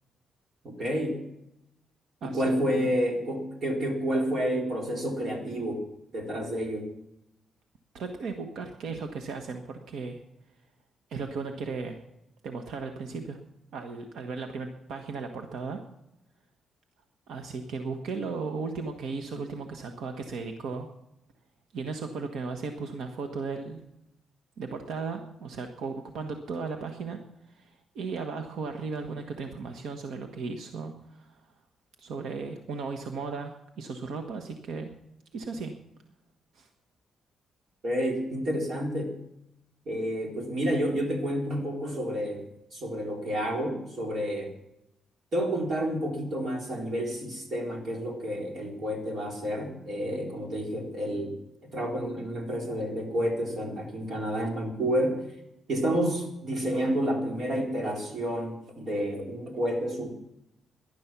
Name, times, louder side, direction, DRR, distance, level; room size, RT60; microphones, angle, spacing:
voice 1, 0.8-1.2 2.2-5.8 6.1-6.9 37.8-39.1 39.9-42.4 42.7-44.5 45.3-51.4 51.6-55.2 55.7-60.1, equal, 45° right, 0 dB, 4.2 m, -29 dB
voice 2, 7.9-10.2 11.1-12.0 12.4-13.4 13.7-15.8 17.3-20.9 21.7-23.8 24.6-27.2 27.5-31.5 32.0-34.9 35.3-35.7 36.5-36.7, right 4 dB, 75° right, 4 dB, 1.4 m, -36 dB
18.5 x 11.5 x 6.1 m, 0.86 s
cardioid pair, 155°, 0 cm